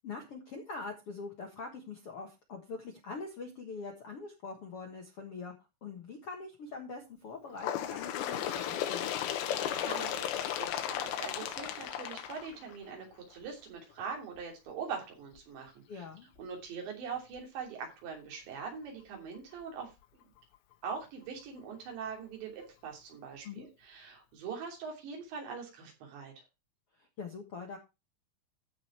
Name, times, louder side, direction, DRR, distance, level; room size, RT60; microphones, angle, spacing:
voice 1, 0.0-5.5 5.8-9.1 15.9-16.3 23.4-23.7 27.0-27.8, left 4 dB, 60° left, 2 dB, 1.5 m, -43 dB
Bird, 7.6-13.0 13.9-14.0 14.4-14.5 15.4-15.5 16.4-16.5 17.4-17.5, left 10 dB, 80° left, 3.3 m, -35 dB
voice 2, 9.7-16.1 16.4-19.9 20.8-26.4, right 6 dB, 85° right, 0 dB, 5.3 m, -42 dB
14.5 x 5.0 x 4.4 m, 0.26 s
omnidirectional pair, 5.0 m